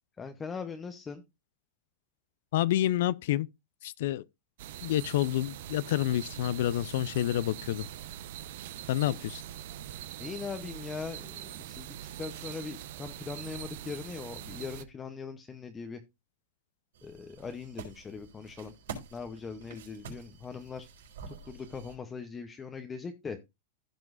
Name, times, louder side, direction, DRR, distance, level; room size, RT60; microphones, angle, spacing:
voice 1, 0.2-1.2 9.1-9.2 10.2-16.0 17.0-18.7 19.1-20.9 21.3-23.4, left 5 dB, 15° left, 0.7 m, -40 dB
voice 2, 2.5-3.5 3.8-4.2 4.8-7.9 8.9-9.4, left 13 dB, 65° left, 0.4 m, -28 dB
sound 1, 4.6-14.8, right 11 dB, 65° right, 0.7 m, -43 dB
sound 2, 16.9-22.0, right 5 dB, 85° right, 4.2 m, -47 dB
15.5 x 6.0 x 2.4 m
supercardioid pair, 155°, 0 cm